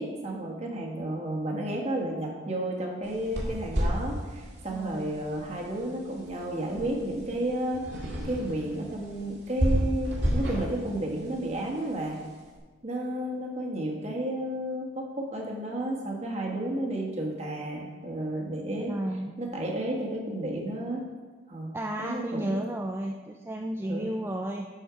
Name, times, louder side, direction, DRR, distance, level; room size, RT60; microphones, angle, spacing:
voice 1, 0.0-7.8 8.2-12.2 12.8-18.9 19.4-21.1 21.5-22.6 23.8-24.1, right 1 dB, 35° right, -1 dB, 1.4 m, -32 dB
sound 1, 3.0-12.4, equal, 60° right, 2.1 m, -32 dB
voice 2, 4.8-5.1 18.8-19.3 21.7-24.7, right 1 dB, 10° right, 2 dB, 0.3 m, -33 dB
11.5 x 4.4 x 4.8 m, 1.4 s
head